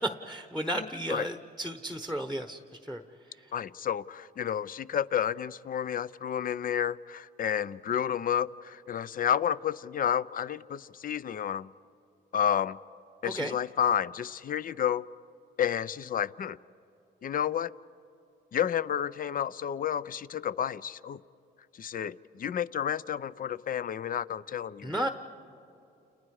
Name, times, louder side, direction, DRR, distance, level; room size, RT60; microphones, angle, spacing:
voice 1, 0.0-3.0 13.2-13.5 24.8-25.1, right 1 dB, ahead, 7 dB, 1.1 m, -33 dB
voice 2, 0.7-1.3 3.5-11.7 12.3-12.8 13.2-15.0 15.6-16.6 17.2-17.7 18.5-21.2 21.7-25.1, left 9 dB, 45° left, 18 dB, 0.6 m, -31 dB
30.0 x 29.5 x 4.8 m, 2.8 s
cardioid pair, 90°, 20 cm